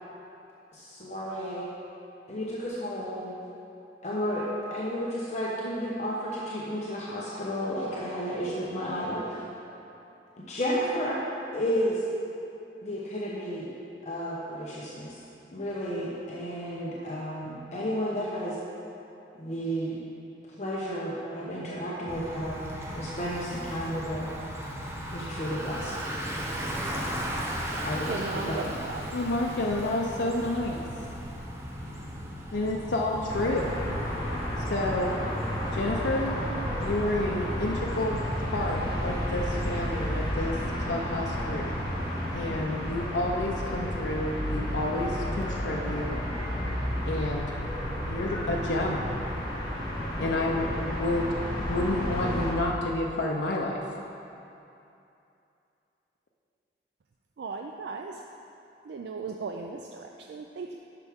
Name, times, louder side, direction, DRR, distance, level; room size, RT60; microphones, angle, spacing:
voice 1, 0.7-1.7 2.3-3.4 4.0-9.5 10.5-11.2 11.5-12.0 12.8-13.7 14.0-15.2 15.5-18.6 19.4-20.0 20.6-22.6 22.9-24.3 25.1-25.9 27.7-28.2 28.5-28.7, equal, 40° left, -6 dB, 0.9 m, -32 dB
Bicycle, 22.1-40.3, equal, 15° right, 0.7 m, -37 dB
voice 2, 28.1-29.1 57.4-58.2 58.8-60.7, right 4 dB, 70° right, 2 dB, 0.4 m, -37 dB
voice 3, 29.1-30.9 32.5-33.8 34.7-35.1 35.7-36.4 36.8-38.2 38.5-40.6 40.9-41.7 42.3-46.2 47.1-47.6 48.1-49.1 50.2-51.3 51.7-53.9, left 1 dB, 80° left, -1 dB, 0.6 m, -30 dB
sound 1, 33.3-52.5, equal, 20° left, 1.5 m, -32 dB
sound 2, 42.4-49.5, equal, ahead, 1.5 m, -46 dB
10.5 x 5.9 x 3.6 m, 2.8 s
head